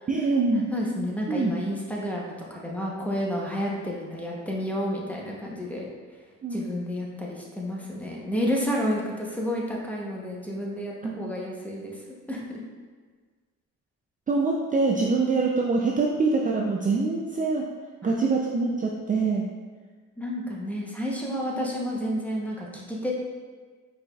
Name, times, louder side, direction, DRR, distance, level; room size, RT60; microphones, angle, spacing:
voice 1, 0.1-0.6 1.3-1.5 6.4-6.6 11.0-11.3 14.3-17.7 18.0-19.5 21.2-21.3, right 3 dB, 25° right, -1 dB, 0.4 m, -24 dB
voice 2, 0.7-5.9 6.5-12.0 12.3-12.6 16.9-17.0 20.2-23.1, equal, 5° left, -3 dB, 0.9 m, -30 dB
4.9 x 4.2 x 2.4 m, 1.5 s
cardioid pair, 90°, 30 cm